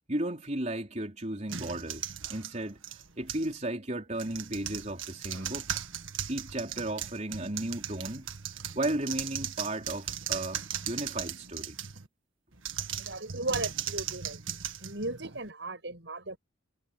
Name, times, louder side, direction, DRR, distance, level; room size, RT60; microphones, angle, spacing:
voice 1, 0.1-2.8 3.2-5.6 6.3-8.3 8.7-11.8, right 1 dB, 35° right, 4.6 m, -34 dB
sound 1, 1.5-3.6 4.1-12.1 12.6-15.5, right 9 dB, 85° right, 1.8 m, -38 dB
voice 2, 12.9-16.4, right 2 dB, 65° right, 7.8 m, -37 dB
head